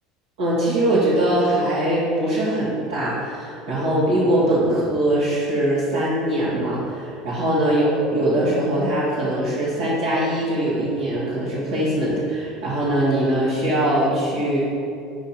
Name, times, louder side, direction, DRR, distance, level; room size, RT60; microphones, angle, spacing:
voice 1, 0.4-14.6, right 1 dB, 60° right, -10 dB, 1.5 m, -21 dB
6.8 x 5.2 x 4.2 m, 2.5 s
figure-of-eight pair, 70°, 0 cm